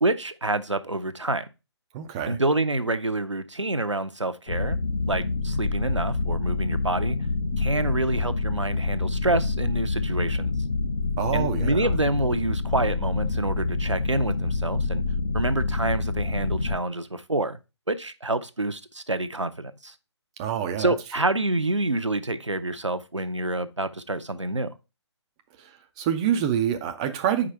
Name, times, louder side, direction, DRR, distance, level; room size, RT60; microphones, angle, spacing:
voice 1, 0.0-1.5 2.3-4.8 5.1-7.2 7.6-10.5 11.3-15.0 15.3-17.6 17.9-19.9 20.8-24.7, right 2 dB, 90° right, 0.7 m, -27 dB
voice 2, 1.9-2.4 11.2-11.9 20.4-20.9 26.0-27.5, right 9 dB, 15° right, 0.4 m, -26 dB
sound 1, 4.5-16.8, left 3 dB, 65° left, 1.0 m, -27 dB
5.0 x 4.6 x 5.6 m
figure-of-eight pair, 140°, 15 cm